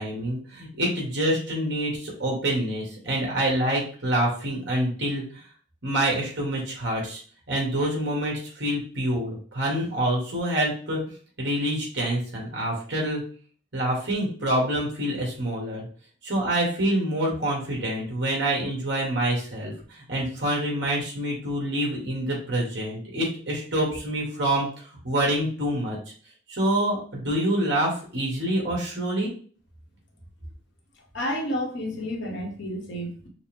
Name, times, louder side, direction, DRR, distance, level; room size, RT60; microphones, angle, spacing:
voice 1, 0.0-5.4 5.8-7.2 7.5-11.0 11.4-13.2 13.7-15.9 16.2-26.0 26.5-29.3, right 1 dB, 60° right, -2 dB, 1.9 m, -26 dB
voice 2, 31.1-33.3, equal, 65° left, 0 dB, 1.3 m, -30 dB
6.3 x 2.2 x 3.5 m, 0.43 s
head